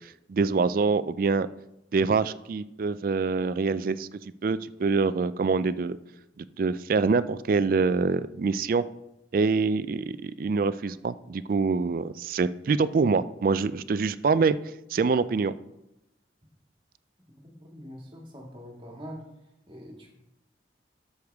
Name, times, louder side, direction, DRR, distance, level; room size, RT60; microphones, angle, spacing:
voice 1, 0.0-1.5 1.9-4.1 4.4-6.0 6.4-8.8 9.3-14.6 14.9-15.5, right 4 dB, 50° right, 15 dB, 0.3 m, -25 dB
voice 2, 17.4-19.2 19.7-20.1, equal, 25° right, -1 dB, 2.0 m, -44 dB
12.5 x 6.5 x 3.5 m, 0.87 s
head